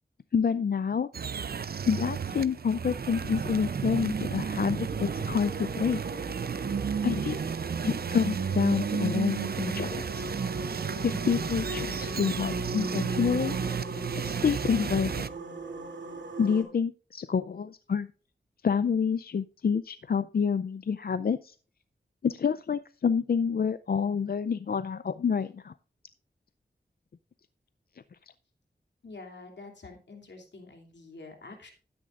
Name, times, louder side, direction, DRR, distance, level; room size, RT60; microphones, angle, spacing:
voice 1, 0.3-1.1 1.9-6.0 7.0-7.4 7.8-10.2 11.0-13.6 14.1-15.1 16.4-18.1 18.6-21.5 22.2-25.7, left 6 dB, 60° left, 14 dB, 0.5 m, -28 dB
sound 1, 1.1-15.3, right 6 dB, 60° right, 0.5 m, -32 dB
sound 2, 4.8-16.6, right 2 dB, 85° right, 2.8 m, -39 dB
voice 2, 29.0-31.7, left 3 dB, 80° left, 2 dB, 2.8 m, -47 dB
12.5 x 9.7 x 2.5 m, 0.37 s
wide cardioid pair, 65°, 18 cm